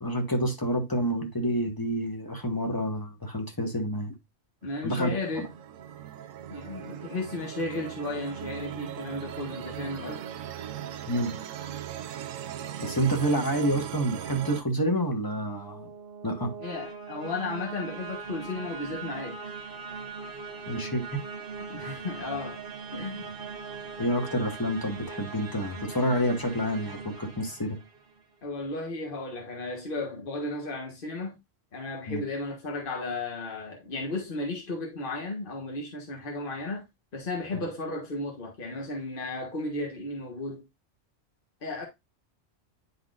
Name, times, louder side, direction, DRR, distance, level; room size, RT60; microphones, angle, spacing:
voice 1, 0.0-4.1 4.8-5.1 5.4-5.5 11.1-11.3 12.8-15.9 16.2-16.5 20.7-21.2 24.0-27.8 32.1-32.2, equal, 20° left, 1.1 m, -28 dB
voice 2, 4.6-5.5 6.5-10.2 16.6-19.4 21.7-22.6 22.9-23.3 28.4-31.3 31.7-36.8 37.1-40.6 41.6-41.9, left 2 dB, 45° left, 1.5 m, -34 dB
sound 1, 4.6-14.6, right 10 dB, 90° right, 1.0 m, -39 dB
sound 2, 15.2-28.2, right 5 dB, 50° right, 1.1 m, -40 dB
9.9 x 3.9 x 2.4 m
omnidirectional pair, 1.3 m